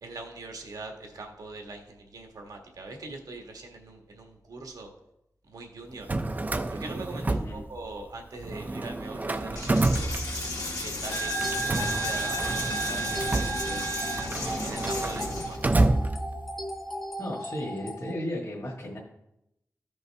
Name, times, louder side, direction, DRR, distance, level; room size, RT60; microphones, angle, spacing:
voice 1, 0.0-4.9 5.5-6.1 6.7-10.1 10.8-13.2 13.6-14.0 14.6-15.6, right 2 dB, 85° right, 2 dB, 1.5 m, -42 dB
Drawer open or close, 5.9-8.1 8.4-10.8 11.4-16.7, right 2 dB, 25° right, 0.4 m, -29 dB
voice 2, 7.3-7.6 17.2-19.0, left 1 dB, 50° left, -5 dB, 1.8 m, -35 dB
Coin (dropping), 9.6-15.6, right 1 dB, 80° left, 1.9 m, -32 dB
sound 1, 11.1-18.1, equal, 5° left, 0.9 m, -37 dB
14.5 x 5.3 x 3.4 m, 0.84 s
wide cardioid pair, 130°, 6 cm